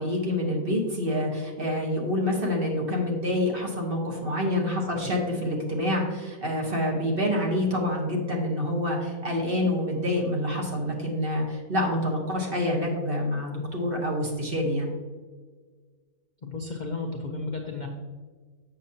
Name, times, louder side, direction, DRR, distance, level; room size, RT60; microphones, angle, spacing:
voice 1, 0.0-14.9, left 1 dB, 40° right, -1 dB, 1.4 m, -27 dB
voice 2, 16.4-17.9, left 3 dB, 50° left, 2 dB, 0.5 m, -33 dB
7.6 x 6.5 x 2.8 m, 1.4 s
omnidirectional pair, 1.6 m